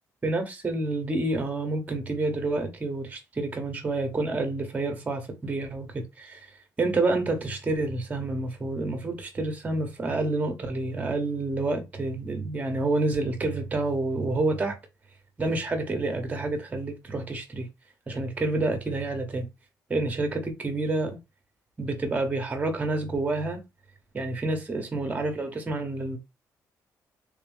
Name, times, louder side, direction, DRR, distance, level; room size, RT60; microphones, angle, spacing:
voice 1, 0.2-6.5 6.8-14.8 15.4-17.7 18.1-19.5 19.9-21.2 21.8-23.6 24.1-26.2, right 2 dB, 25° right, 1.1 m, -28 dB
3.4 x 2.9 x 3.5 m
cardioid pair, 120°, 7 cm